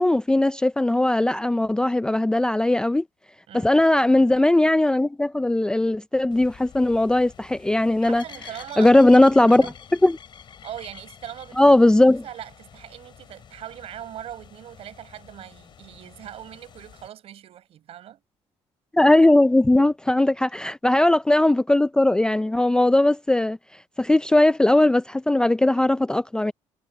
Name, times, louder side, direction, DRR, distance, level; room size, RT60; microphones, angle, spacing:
voice 1, 0.0-3.0 3.5-8.2 8.8-9.7 10.0-10.2 11.6-12.2 18.9-23.6 24.0-26.5, left 1 dB, 5° left, 0.4 m, -18 dB
sound 1, 6.3-17.1, left 8 dB, 45° left, 3.0 m, -48 dB
voice 2, 8.1-9.0 9.6-9.7 10.6-11.8 12.2-18.2, right 11 dB, 60° right, 6.2 m, -40 dB
cardioid pair, 135°, 11 cm